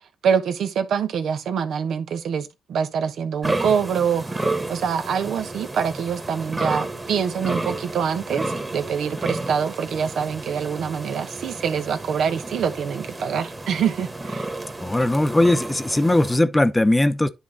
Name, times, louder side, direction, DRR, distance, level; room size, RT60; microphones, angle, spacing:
voice 1, 0.2-14.5 15.0-15.1, right 7 dB, 70° right, 1.0 m, -25 dB
sound 1, 3.4-16.4, right 2 dB, 20° right, 1.6 m, -31 dB
voice 2, 14.8-17.3, left 1 dB, 15° left, 0.9 m, -19 dB
10.5 x 3.6 x 4.1 m
supercardioid pair, 55°, 0 cm